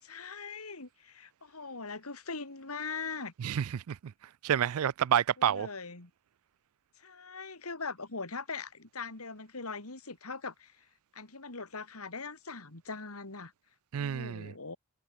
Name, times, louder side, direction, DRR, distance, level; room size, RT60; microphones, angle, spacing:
voice 1, 0.0-3.3 5.4-6.1 7.0-10.8 11.1-13.5 14.0-14.8, left 4 dB, 85° left, 3.2 m, -41 dB
voice 2, 3.4-4.1 4.4-5.7 13.9-14.5, right 9 dB, 75° right, 0.4 m, -29 dB
head